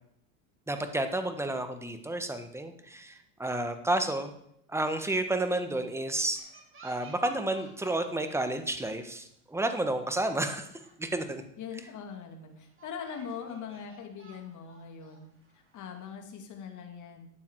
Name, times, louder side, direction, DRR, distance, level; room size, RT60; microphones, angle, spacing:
voice 1, 0.7-4.3 4.7-6.4 6.8-10.7 11.0-11.4, right 1 dB, 5° right, 7 dB, 1.3 m, -31 dB
sound 1, 6.3-8.2 8.5-8.9 9.6-9.7 10.1-10.2 10.5-11.4 11.9-12.0 12.6-16.2, right 5 dB, 25° right, 3.5 m, -53 dB
voice 2, 11.6-15.3 15.5-17.3, left 7 dB, 40° left, 4 dB, 2.5 m, -42 dB
12.0 x 8.9 x 4.7 m, 0.71 s
supercardioid pair, 105°, 44 cm